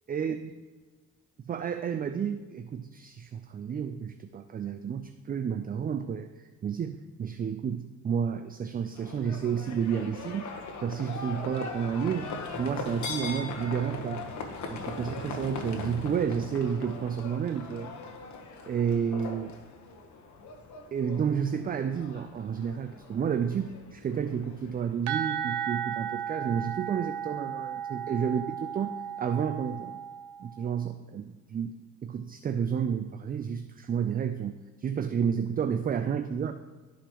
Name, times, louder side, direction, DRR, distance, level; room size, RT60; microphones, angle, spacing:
voice 1, 0.1-0.5 1.5-10.5 10.8-12.3 12.6-14.3 14.7-17.9 18.7-19.5 20.9-30.0 30.4-31.7 32.0-36.5, right 7 dB, 30° right, 9 dB, 0.4 m, -31 dB
Livestock farm animals working animals, 8.9-25.4, left 4 dB, 70° left, 1.1 m, -40 dB
sound 1, 25.1-30.7, right 9 dB, 85° right, 0.9 m, -35 dB
12.5 x 5.0 x 3.0 m, 1.3 s
cardioid pair, 90°, 30 cm